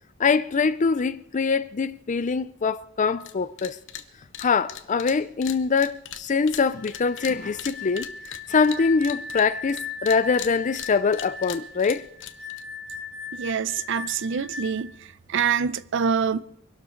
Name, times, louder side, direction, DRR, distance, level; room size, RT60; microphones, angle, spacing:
voice 1, 0.2-3.8 4.4-12.1, left 5 dB, 35° left, 0.5 m, -24 dB
sound 1, 3.2-3.3 3.6-4.0 4.3-9.8 10.1-12.6, left 10 dB, 65° left, 1.0 m, -38 dB
sound 2, 6.7-15.0, left 5 dB, 5° left, 2.2 m, -38 dB
voice 2, 13.3-14.9 15.3-16.4, right 6 dB, 65° right, 0.6 m, -25 dB
24.0 x 12.0 x 3.9 m
head